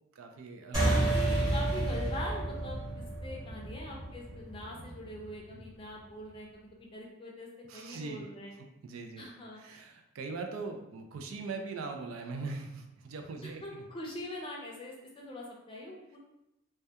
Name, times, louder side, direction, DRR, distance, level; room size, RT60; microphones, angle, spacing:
voice 1, 0.1-1.0 4.7-5.0 5.5-5.7 7.7-8.2 8.6-9.3 9.5-13.8, right 4 dB, 85° right, 4 dB, 0.4 m, -41 dB
sound 1, 0.7-5.6, right 1 dB, 20° right, 1.0 m, -31 dB
voice 2, 0.8-2.8 3.2-8.5 9.2-9.6 13.6-16.2, left 1 dB, 25° left, -2 dB, 0.4 m, -43 dB
2.2 x 2.2 x 2.7 m, 0.90 s
head